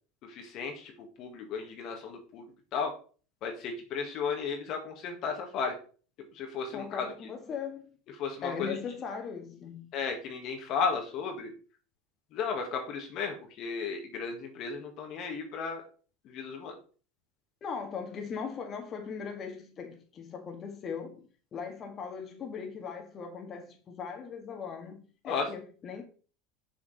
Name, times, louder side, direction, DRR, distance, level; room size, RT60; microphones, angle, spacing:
voice 1, 0.3-0.9 1.2-2.9 3.4-5.7 6.4-7.1 8.2-8.8 9.9-11.5 12.3-15.8 16.3-16.7 25.3-25.5, left 5 dB, 55° left, 1.8 m, -34 dB
voice 2, 6.7-7.9 8.4-9.9 17.6-26.0, left 6 dB, 35° left, 1.8 m, -39 dB
6.3 x 5.9 x 4.1 m
hypercardioid pair, 90°, 0 cm